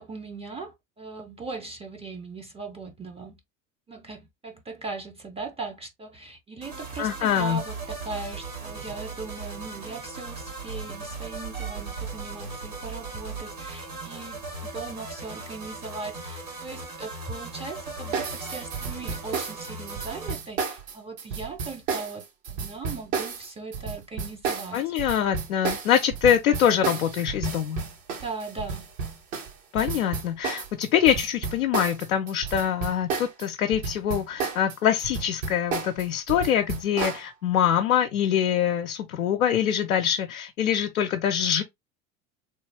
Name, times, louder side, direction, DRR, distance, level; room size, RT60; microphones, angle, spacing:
voice 1, 0.0-3.4 3.9-24.9 28.1-28.9, right 3 dB, 15° right, 0.6 m, -39 dB
sound 1, 6.6-20.3, right 3 dB, 85° right, 2.2 m, -38 dB
voice 2, 7.0-7.6 24.7-27.8 29.7-41.6, left 9 dB, 80° left, 0.6 m, -24 dB
sound 2, 18.1-33.5 33.7-37.2, right 5 dB, 65° right, 1.4 m, -32 dB
3.2 x 2.3 x 3.2 m
figure-of-eight pair, 80°, 42 cm